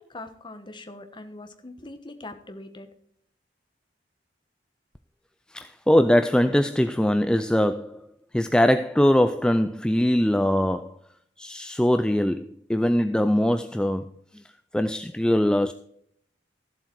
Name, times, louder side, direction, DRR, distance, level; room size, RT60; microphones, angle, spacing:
voice 1, 0.0-2.9, left 2 dB, 25° left, 1.2 m, -42 dB
voice 2, 5.5-8.1 8.3-11.0 11.4-14.4 14.7-15.7, left 1 dB, 5° left, 0.3 m, -22 dB
14.0 x 7.7 x 4.6 m
head